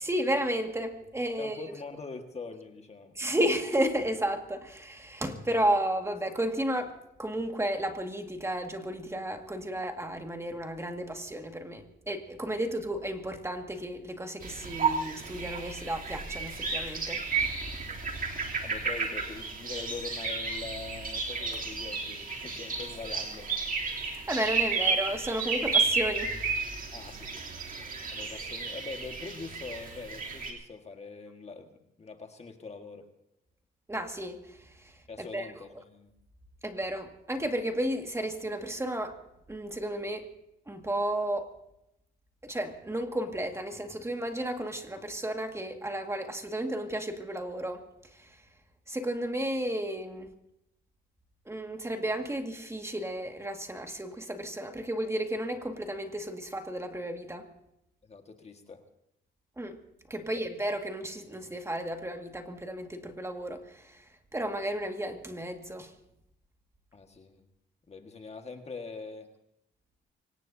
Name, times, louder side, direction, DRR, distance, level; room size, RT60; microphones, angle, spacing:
voice 1, 0.0-1.6 3.2-6.9 7.2-17.2 24.0-26.3 33.9-34.4 35.3-35.5 36.6-39.1 39.5-40.2 40.7-41.5 42.4-47.9 48.9-50.3 51.5-57.5 59.6-59.7 60.1-63.6 64.3-65.9, right 1 dB, 15° right, 4 dB, 2.0 m, -33 dB
voice 2, 1.4-3.2 17.9-18.0 18.6-23.5 26.9-33.1 35.1-36.1 58.0-58.8 60.2-60.3 66.9-67.5 67.9-69.3, left 4 dB, 30° left, 5 dB, 1.7 m, -43 dB
sound 1, 14.4-30.5, right 4 dB, 45° right, 3.1 m, -32 dB
24.5 x 18.5 x 2.8 m, 0.81 s
cardioid pair, 90°, 20 cm